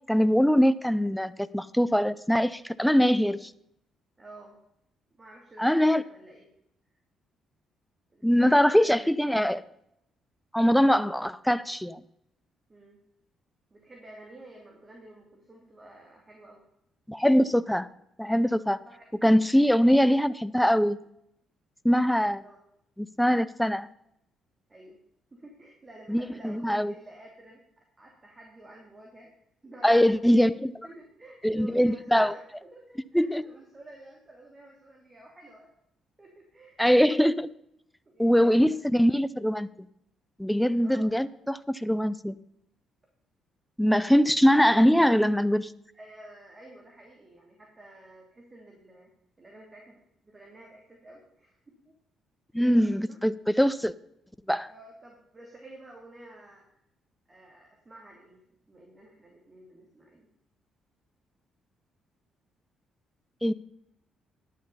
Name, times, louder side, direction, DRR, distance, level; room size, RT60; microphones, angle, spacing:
voice 1, 0.1-3.5 5.6-6.0 8.2-9.6 10.5-12.0 17.1-17.9 18.2-18.8 19.2-21.0 21.8-22.4 23.0-23.9 26.1-26.9 29.8-30.5 31.4-32.3 33.1-33.5 36.8-37.5 38.2-39.7 40.4-42.3 43.8-45.7 52.5-53.9 54.5-54.7 63.4-63.5, equal, 5° left, 16 dB, 0.6 m, -22 dB
voice 2, 4.2-4.6 5.2-6.4 8.1-8.9 12.7-13.0 13.7-16.6 18.9-19.0 22.4-22.6 24.7-25.0 25.3-29.3 29.6-30.4 30.8-35.7 36.2-36.8 38.1-38.8 40.8-41.1 45.9-49.1 49.4-51.9 52.5-52.6 53.1-53.2 54.6-56.8 57.3-58.4 58.7-60.3, right 1 dB, 30° right, -1 dB, 2.8 m, -50 dB
11.0 x 7.5 x 5.5 m, 0.76 s
hypercardioid pair, 45°, 0 cm